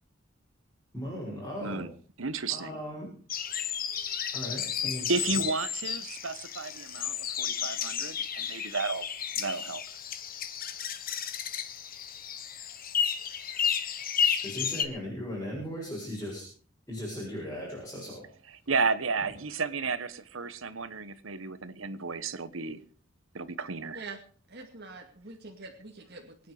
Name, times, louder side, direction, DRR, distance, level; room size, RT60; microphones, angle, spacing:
voice 1, 0.9-1.9 2.5-3.1 4.3-5.4 14.4-16.5 16.9-18.3 19.2-19.3, equal, 10° left, 6.8 m, -37 dB
voice 2, 2.2-2.8 5.1-9.1 9.4-9.8 18.7-22.8 23.3-24.0, right 4 dB, 80° right, 1.2 m, -32 dB
sound 1, 3.3-14.8, left 8 dB, 45° left, 1.4 m, -32 dB
voice 3, 24.5-26.5, right 3 dB, 50° right, 2.3 m, -45 dB
24.0 x 9.5 x 4.9 m
head